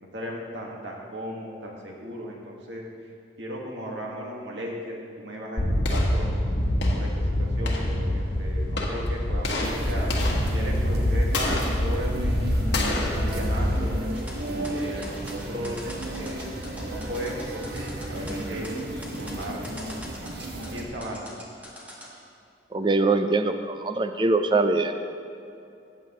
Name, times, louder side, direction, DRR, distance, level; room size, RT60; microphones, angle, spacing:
voice 1, 0.0-2.8 3.4-6.3 6.9-10.1 10.5-12.4 12.9-14.2 14.7-18.7 19.2-21.2, equal, 80° right, -1 dB, 1.6 m, -36 dB
sound 1, 5.6-14.7, left 1 dB, 70° left, 1.4 m, -25 dB
sound 2, 9.6-20.8, right 1 dB, 60° right, 1.3 m, -34 dB
sound 3, 14.1-22.1, equal, 10° right, 1.3 m, -43 dB
voice 2, 22.7-24.9, right 3 dB, 25° right, 8 dB, 0.4 m, -23 dB
15.0 x 9.1 x 3.0 m, 2.7 s
head